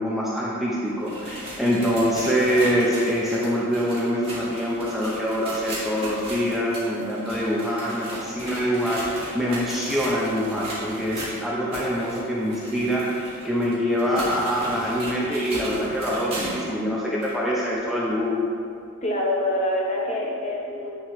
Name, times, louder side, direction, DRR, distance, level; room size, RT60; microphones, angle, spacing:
voice 1, 0.0-18.3, equal, ahead, -7 dB, 0.6 m, -25 dB
sound 1, 0.8-16.7 17.2-17.3 18.0-18.1 19.0-19.1, right 1 dB, 25° right, 1.6 m, -37 dB
voice 2, 19.0-20.9, left 1 dB, 30° left, -2 dB, 0.9 m, -25 dB
9.2 x 4.0 x 3.1 m, 2.4 s
head